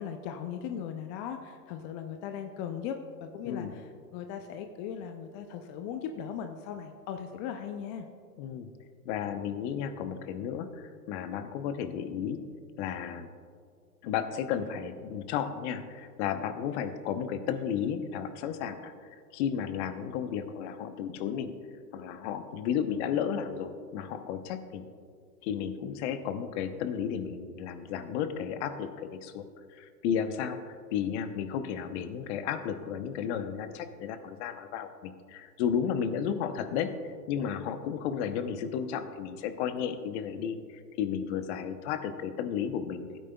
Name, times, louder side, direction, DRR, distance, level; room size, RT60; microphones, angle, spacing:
voice 1, 0.0-3.8 4.1-8.1, left 8 dB, 30° left, 6 dB, 0.4 m, -38 dB
voice 2, 8.4-8.7 9.0-12.5 12.8-13.3 14.0-21.5 21.9-24.8 25.4-29.4 29.7-37.0 37.3-43.2, left 8 dB, 45° left, 10 dB, 0.8 m, -33 dB
15.5 x 9.3 x 2.3 m, 2.1 s
hypercardioid pair, 105°, 47 cm